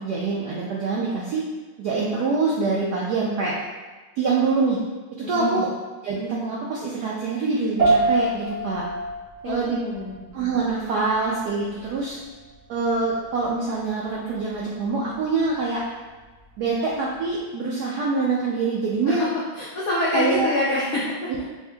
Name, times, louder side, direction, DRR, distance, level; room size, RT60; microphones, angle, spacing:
voice 1, 0.0-1.4 1.8-3.5 4.2-4.8 5.2-5.7 6.0-8.8 9.4-9.8 10.3-12.2 12.7-15.8 16.6-19.2 20.1-20.5 21.3-21.4, right 4 dB, 80° right, -4 dB, 0.9 m, -25 dB
voice 2, 5.2-5.7 9.4-10.2 19.0-19.3 19.5-21.3, left 1 dB, 80° left, -7 dB, 0.8 m, -26 dB
sound 1, 7.8-17.4, right 2 dB, 30° right, 1.0 m, -29 dB
3.5 x 2.8 x 3.3 m, 1.3 s
omnidirectional pair, 2.2 m